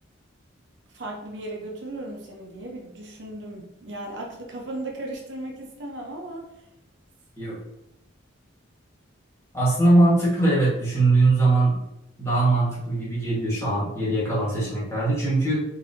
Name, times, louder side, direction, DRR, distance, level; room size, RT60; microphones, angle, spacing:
voice 1, 0.9-6.7, right 1 dB, 65° right, -1 dB, 0.7 m, -36 dB
voice 2, 9.5-11.8 12.2-15.6, right 2 dB, 15° left, -8 dB, 1.4 m, -21 dB
3.9 x 2.7 x 2.6 m, 0.87 s
head